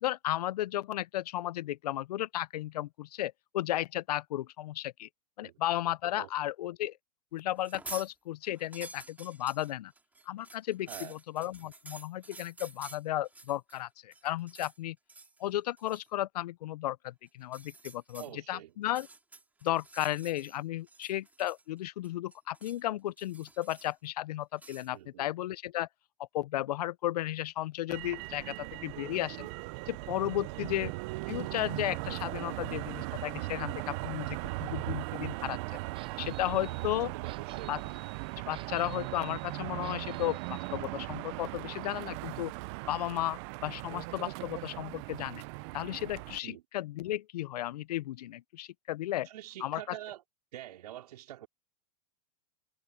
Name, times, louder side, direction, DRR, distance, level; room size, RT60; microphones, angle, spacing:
voice 1, 0.0-5.1 5.4-7.0 7.3-9.9 10.3-15.0 15.4-19.1 19.6-25.9 26.3-29.5 29.9-30.9 31.3-35.6 36.2-37.1 37.7-37.8 38.5-42.5 42.9-45.4 45.7-49.3 49.6-50.0, left 14 dB, 80° left, 0.6 m, -34 dB
sound 1, 7.6-8.1 8.5-13.8 14.1-14.8 15.1-15.4 15.8-16.1 17.4-18.3 18.8-20.6 20.9-21.8 22.0-22.8 23.2-24.0 24.6-24.9, right 3 dB, 10° right, 3.1 m, -49 dB
voice 2, 18.2-18.7 24.9-25.3 30.5-30.7 37.1-37.8 46.4-46.6 49.2-50.2 50.5-51.5, right 13 dB, 80° right, 4.1 m, -45 dB
Motor vehicle (road), 27.9-46.4, right 24 dB, 45° right, 0.6 m, -38 dB
sound 2, 35.9-40.8, right 10 dB, 30° right, 3.6 m, -53 dB
supercardioid pair, 145°, 20 cm